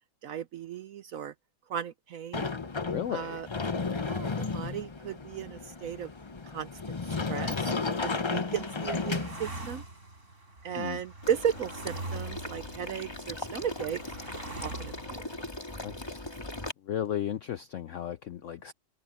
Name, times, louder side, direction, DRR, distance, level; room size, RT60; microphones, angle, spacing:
voice 1, 0.2-1.3 1.7-2.5 3.1-3.5 3.8-6.1 6.4-7.7 8.0-9.8 10.6-14.2 14.6-15.3, right 9 dB, 65° right, 0.9 m, -35 dB
Sliding door, 2.3-9.8, left 4 dB, 40° left, 0.4 m, -33 dB
voice 2, 2.9-3.4 10.8-11.0 15.8-16.3 16.8-18.7, left 10 dB, 70° left, 0.7 m, -35 dB
sound 1, 7.6-15.5, right 2 dB, 40° right, 5.1 m, -44 dB
Water / Liquid, 11.2-16.7, left 1 dB, 15° left, 1.9 m, -40 dB
omnidirectional pair, 1.9 m